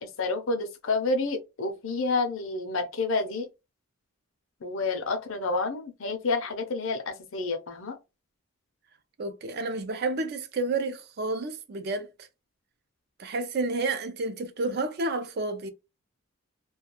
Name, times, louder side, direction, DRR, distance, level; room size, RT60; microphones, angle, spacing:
voice 1, 0.0-3.5 4.6-8.0, left 3 dB, 60° left, 0.5 m, -29 dB
voice 2, 9.2-12.3 13.2-15.7, right 3 dB, 45° right, 0.4 m, -30 dB
2.3 x 2.2 x 2.9 m
head